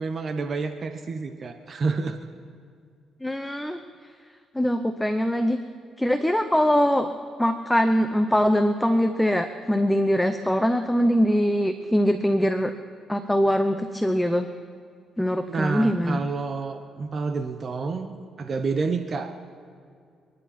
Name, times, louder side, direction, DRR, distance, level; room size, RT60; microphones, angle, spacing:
voice 1, 0.0-2.2 15.5-19.3, right 4 dB, 45° right, 7 dB, 1.0 m, -29 dB
voice 2, 3.2-3.8 4.5-5.6 6.0-7.1 7.4-12.7 13.1-14.5 15.2-16.2, equal, 5° left, 8 dB, 0.8 m, -22 dB
29.0 x 11.0 x 4.3 m, 2.3 s
cardioid pair, 90°, 0 cm